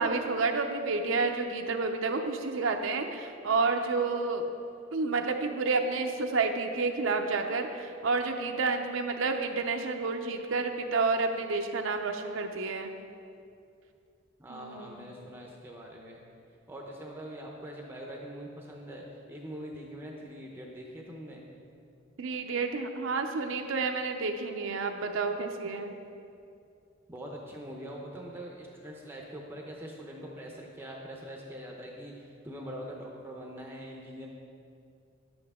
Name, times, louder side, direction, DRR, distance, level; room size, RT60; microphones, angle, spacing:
voice 1, 0.0-4.4 4.9-13.0 14.5-15.1 22.2-26.0, right 4 dB, 65° right, 4 dB, 0.6 m, -30 dB
voice 2, 14.4-16.2 16.7-21.4 27.1-34.3, equal, 10° right, -1 dB, 0.7 m, -43 dB
10.5 x 7.9 x 3.6 m, 2.5 s
head